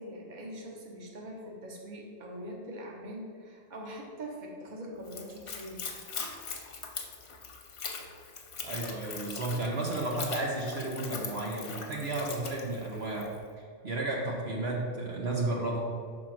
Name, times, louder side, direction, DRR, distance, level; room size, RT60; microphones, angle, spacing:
voice 1, 0.0-5.8, equal, 40° right, -1 dB, 1.2 m, -43 dB
Splash splatter / Trickle dribble, 5.0-13.4, left 5 dB, 65° left, 1.1 m, -41 dB
voice 2, 8.6-13.3 13.8-15.8, right 2 dB, 60° right, -2 dB, 1.2 m, -33 dB
6.1 x 4.2 x 5.9 m, 2.3 s
omnidirectional pair, 1.2 m